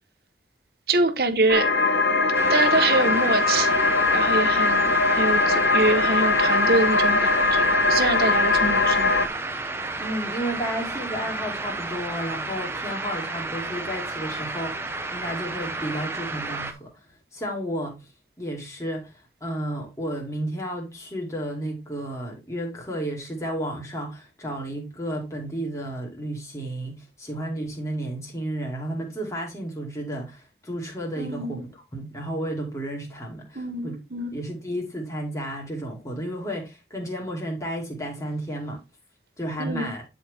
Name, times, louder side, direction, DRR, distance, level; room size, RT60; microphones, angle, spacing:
voice 1, 0.9-1.7 2.5-3.8 4.1-9.2 31.2-31.6 33.5-34.4 39.6-39.9, right 3 dB, 60° right, 1.1 m, -25 dB
sound 1, 1.5-9.3, left 3 dB, 75° left, 0.9 m, -21 dB
sound 2, 2.3-16.7, right 3 dB, 15° right, 0.7 m, -32 dB
voice 2, 10.0-14.9 15.1-17.1 17.3-18.1 18.4-34.0 34.3-38.8 39.4-40.1, right 1 dB, 15° left, 2.5 m, -32 dB
10.5 x 4.4 x 3.5 m
head